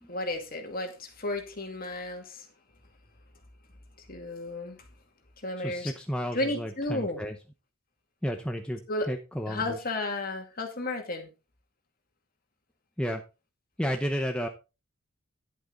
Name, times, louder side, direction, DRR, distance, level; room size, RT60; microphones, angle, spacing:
voice 1, 0.1-2.5 4.1-4.8 5.4-5.9 6.3-7.2 8.9-9.1 9.5-11.3, left 2 dB, 40° left, 4 dB, 2.2 m, -33 dB
voice 2, 5.6-7.4 8.2-8.8 9.1-9.8 13.0-13.2 13.8-14.5, equal, 5° left, 4 dB, 0.7 m, -32 dB
10.5 x 8.3 x 3.9 m, 0.29 s
head